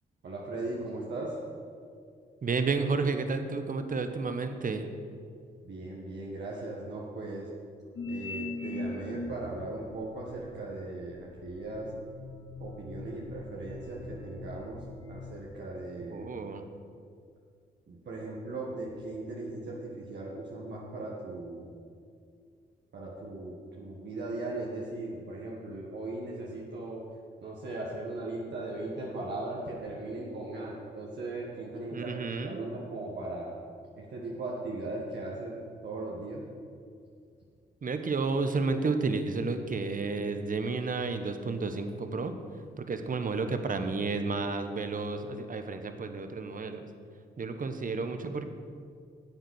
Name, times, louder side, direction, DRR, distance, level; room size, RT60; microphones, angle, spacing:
voice 1, 0.2-1.4 5.6-7.5 8.1-11.9 12.6-16.3 17.9-21.7 22.9-27.0 27.4-33.5 34.0-35.5 35.8-36.4, right 2 dB, 60° right, -4 dB, 1.8 m, -38 dB
voice 2, 2.4-4.9 16.0-16.7 31.9-32.6 37.8-42.3 42.8-46.9 47.4-48.5, right 4 dB, 45° right, 8 dB, 1.2 m, -31 dB
sound 1, 7.9-9.6 10.3-15.2, left 2 dB, 65° left, 3.0 m, -41 dB
10.5 x 8.0 x 6.4 m, 2.3 s
hypercardioid pair, 40°, 20 cm